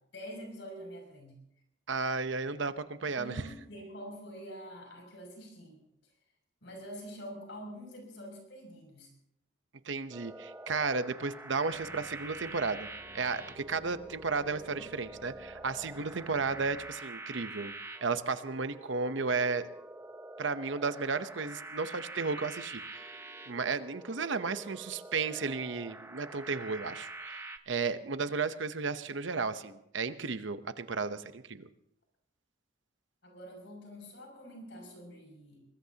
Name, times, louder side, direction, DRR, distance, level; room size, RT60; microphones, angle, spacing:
voice 1, 0.1-1.4 3.1-5.8 6.6-9.1 14.7-14.8 15.9-16.3 33.2-35.6, equal, 65° left, 2 dB, 6.7 m, -46 dB
voice 2, 1.9-3.4 9.8-12.9 13.1-17.7 18.0-19.7 20.4-31.7, right 4 dB, 70° right, 11 dB, 0.9 m, -34 dB
sound 1, 10.1-27.6, right 2 dB, 15° right, 0.8 m, -46 dB
sound 2, 11.7-16.8, right 1 dB, 45° right, 3.3 m, -55 dB
24.5 x 20.5 x 2.9 m, 0.78 s
head